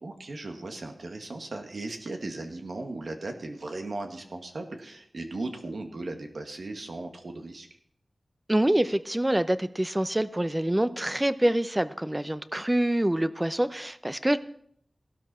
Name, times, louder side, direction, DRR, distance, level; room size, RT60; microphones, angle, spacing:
voice 1, 0.0-7.7, right 2 dB, 70° right, 4 dB, 2.0 m, -37 dB
voice 2, 8.5-14.4, right 1 dB, 15° right, 12 dB, 0.7 m, -26 dB
16.5 x 12.5 x 4.4 m, 0.65 s
wide cardioid pair, 80°, 0 cm